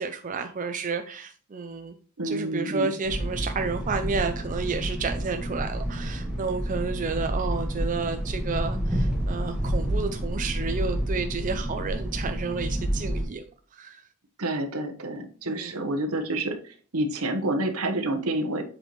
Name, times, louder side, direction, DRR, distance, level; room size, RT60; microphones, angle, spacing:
voice 1, 0.0-2.0 2.2-13.5 13.7-14.0 15.5-15.7, right 4 dB, 35° right, 6 dB, 0.4 m, -31 dB
voice 2, 2.2-3.0 14.4-18.6, right 1 dB, 75° right, 6 dB, 1.1 m, -28 dB
sound 1, 3.0-13.3, equal, 5° right, 1.5 m, -29 dB
7.7 x 4.4 x 3.1 m, 0.42 s
head